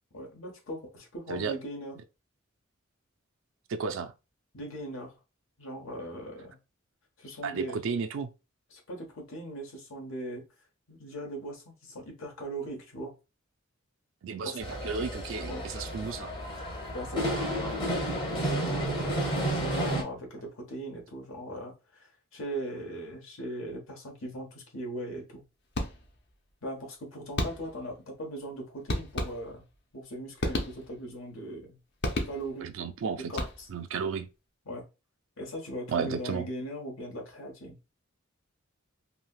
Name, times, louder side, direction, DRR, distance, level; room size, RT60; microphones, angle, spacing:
voice 1, 0.1-1.9 4.5-5.2 5.6-6.6 7.2-7.8 8.7-10.4 10.9-13.1 14.4-14.6 15.5-15.7 16.0-16.2 16.9-17.5 18.4-25.4 26.6-29.6 29.9-31.8 32.3-32.7 33.3-33.7 34.6-34.8 35.4-37.8, right 1 dB, 75° left, 1.1 m, -39 dB
voice 2, 3.7-4.1 7.4-8.3 14.2-16.3 32.6-33.3 33.7-34.3 35.9-36.5, right 5 dB, 70° right, 0.4 m, -33 dB
sound 1, 14.6-20.0, right 1 dB, 25° left, 0.8 m, -31 dB
sound 2, 25.7-26.3 27.4-27.9 28.9-29.8 30.4-31.2 32.0-32.7 33.3-33.9, left 1 dB, 55° left, 0.7 m, -33 dB
3.2 x 2.8 x 2.3 m
head